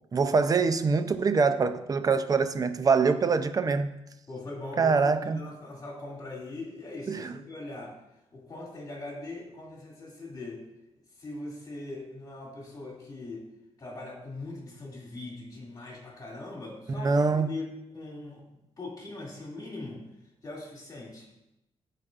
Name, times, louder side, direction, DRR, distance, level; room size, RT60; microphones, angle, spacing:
voice 1, 0.1-3.9 4.8-5.4 7.1-7.3 17.0-17.5, right 4 dB, 30° right, 0.5 m, -24 dB
voice 2, 4.3-7.9 8.3-10.6 11.2-13.4 13.8-18.4 18.8-20.0 20.4-21.3, left 2 dB, 30° left, 2.5 m, -41 dB
13.0 x 4.9 x 2.5 m
cardioid pair, 115°, 12 cm